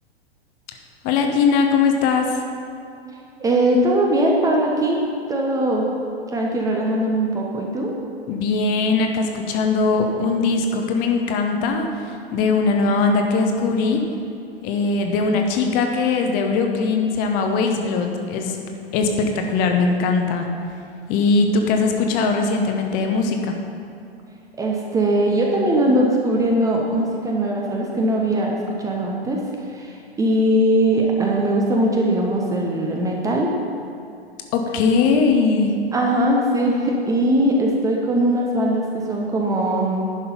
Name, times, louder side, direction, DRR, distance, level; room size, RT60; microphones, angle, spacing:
voice 1, 1.0-2.4 8.3-14.0 14.6-18.6 18.9-20.5 21.1-23.5 34.5-35.8, left 4 dB, 30° left, 4 dB, 0.8 m, -20 dB
voice 2, 3.4-5.0 5.3-5.9 6.3-7.9 24.6-33.5 35.9-40.1, right 1 dB, 10° right, -1 dB, 0.7 m, -20 dB
10.5 x 5.5 x 5.4 m, 2.6 s
figure-of-eight pair, 105°, 32 cm